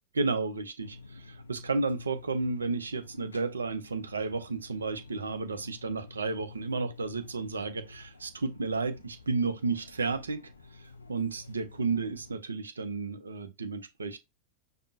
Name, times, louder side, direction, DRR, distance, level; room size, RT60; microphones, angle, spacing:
voice 1, 0.1-10.5 10.8-14.2, right 3 dB, 75° right, 0.4 m, -32 dB
sound 1, 0.8-12.4, left 3 dB, 75° left, 0.4 m, -51 dB
5.1 x 2.0 x 2.6 m
figure-of-eight pair, 90°, 0 cm